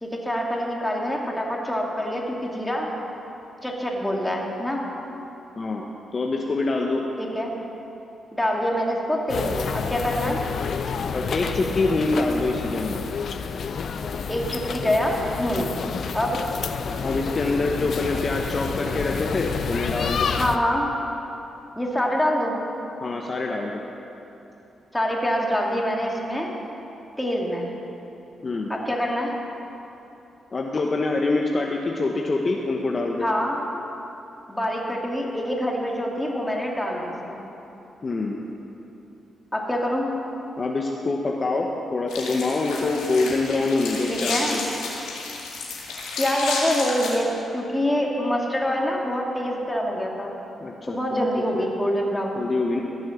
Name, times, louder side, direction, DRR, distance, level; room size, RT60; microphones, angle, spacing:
voice 1, 0.0-2.9 3.6-4.8 7.2-7.5 8.3-10.4 14.3-15.7 16.1-16.4 20.4-20.9 21.8-22.6 24.9-26.5 27.2-27.7 28.7-29.3 33.2-33.6 34.5-37.4 39.5-40.1 44.1-44.6 46.2-50.3 50.9-52.4, equal, 10° left, -1 dB, 2.4 m, -25 dB
voice 2, 6.1-7.0 11.1-13.0 17.0-20.3 23.0-23.8 28.4-28.7 30.5-33.3 38.0-38.4 40.6-44.6 50.6-51.3 51.5-51.6 52.4-52.8, left 3 dB, 45° left, 1 dB, 1.0 m, -25 dB
sound 1, 9.3-20.6, left 6 dB, 65° left, 0.6 m, -29 dB
sound 2, 42.1-47.1, left 3 dB, 85° left, 2.1 m, -31 dB
16.0 x 6.3 x 7.2 m, 3.0 s
supercardioid pair, 55°, 0 cm